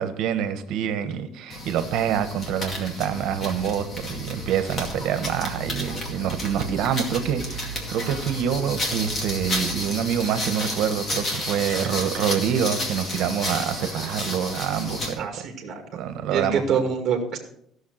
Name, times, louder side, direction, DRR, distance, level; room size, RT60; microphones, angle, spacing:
voice 1, 0.0-15.3 15.9-16.8, right 8 dB, 60° right, 9 dB, 1.3 m, -26 dB
sound 1, 1.5-15.2, left 1 dB, 30° left, 2.3 m, -32 dB
sound 2, 3.1-12.1, right 4 dB, 65° left, 3.2 m, -40 dB
voice 2, 15.2-15.8 16.3-17.4, right 6 dB, 30° right, 3 dB, 2.1 m, -25 dB
15.0 x 6.6 x 6.5 m, 0.68 s
cardioid pair, 180°, 0 cm